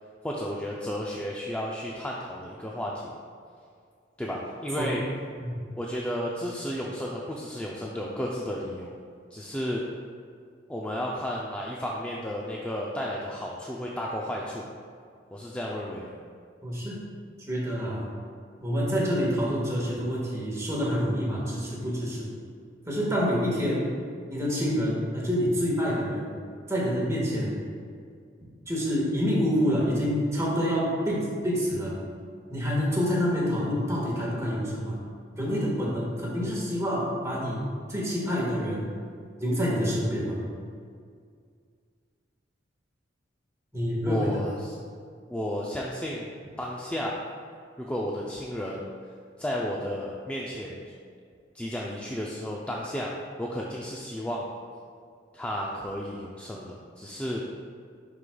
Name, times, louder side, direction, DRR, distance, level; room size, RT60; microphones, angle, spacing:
voice 1, 0.2-3.1 4.2-5.0 5.8-9.0 9.3-9.8 10.7-14.7 15.3-16.2 44.1-44.8 45.3-46.3 46.6-47.2 47.8-48.9 49.4-50.8 51.5-53.1 53.4-54.5 55.3-57.4, equal, 5° left, -4 dB, 0.4 m, -33 dB
voice 2, 16.6-17.0 17.5-18.0 18.6-22.3 22.9-23.9 24.3-26.3 26.7-27.5 28.7-31.9 32.5-35.0 35.4-37.6 37.9-38.9 39.4-40.4 43.7-44.4, equal, 15° right, -5 dB, 1.5 m, -27 dB
11.0 x 4.9 x 2.3 m, 2.2 s
head